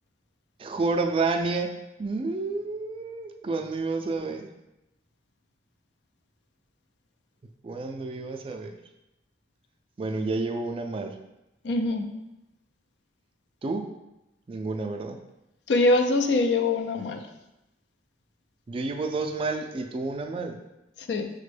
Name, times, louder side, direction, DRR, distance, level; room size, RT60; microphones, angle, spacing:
voice 1, 0.6-4.5 7.6-8.7 10.0-11.2 13.6-13.9 14.5-15.2 18.7-20.6, right 3 dB, 30° right, 4 dB, 0.3 m, -30 dB
voice 2, 11.6-12.1 15.7-17.2 21.1-21.3, left 2 dB, 70° left, 6 dB, 0.4 m, -23 dB
5.9 x 2.1 x 3.2 m, 0.93 s
head